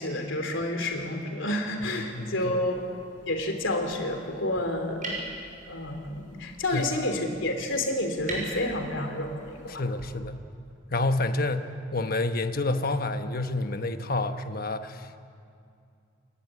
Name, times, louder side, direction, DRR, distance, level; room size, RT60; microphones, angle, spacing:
voice 1, 0.0-2.8 3.3-5.1 5.7-9.8, left 1 dB, 85° left, 4 dB, 3.2 m, -29 dB
voice 2, 1.9-2.6 6.7-6.8 9.8-10.4 10.9-15.2, left 2 dB, 50° left, 8 dB, 1.2 m, -29 dB
sound 1, 2.0-10.1, right 2 dB, 45° right, 6.7 m, -43 dB
29.5 x 13.0 x 9.7 m, 2.4 s
head